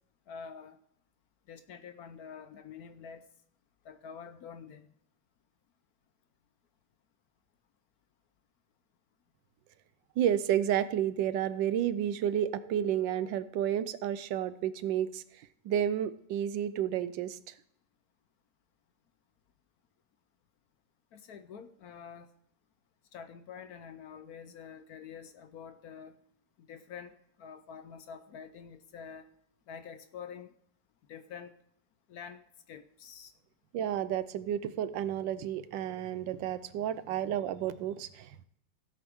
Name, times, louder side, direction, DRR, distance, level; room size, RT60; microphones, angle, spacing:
voice 1, 0.3-0.8 1.5-3.2 3.8-4.9 21.1-22.3 23.1-26.1 26.6-29.3 29.7-30.5 31.1-31.5 32.1-32.4 32.7-33.3, left 7 dB, 65° left, 9 dB, 1.1 m, -47 dB
voice 2, 10.2-15.2 15.6-17.5 33.7-38.5, right 10 dB, 85° right, 14 dB, 1.4 m, -31 dB
15.5 x 8.3 x 3.6 m, 0.69 s
omnidirectional pair, 2.0 m